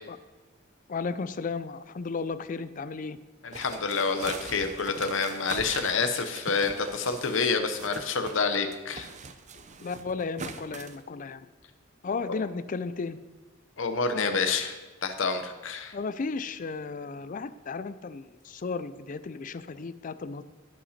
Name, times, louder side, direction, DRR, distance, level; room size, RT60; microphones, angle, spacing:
voice 1, 0.9-3.2 9.5-11.5 12.0-13.2 14.1-14.4 15.9-20.4, left 4 dB, 40° left, 13 dB, 0.4 m, -34 dB
voice 2, 3.4-9.1 12.3-12.4 13.8-14.8 15.0-15.9, left 4 dB, 70° left, 7 dB, 0.8 m, -28 dB
sound 1, 3.5-8.4 8.7-11.0, right 4 dB, 35° right, 0.6 m, -42 dB
16.0 x 5.7 x 4.3 m, 1.3 s
head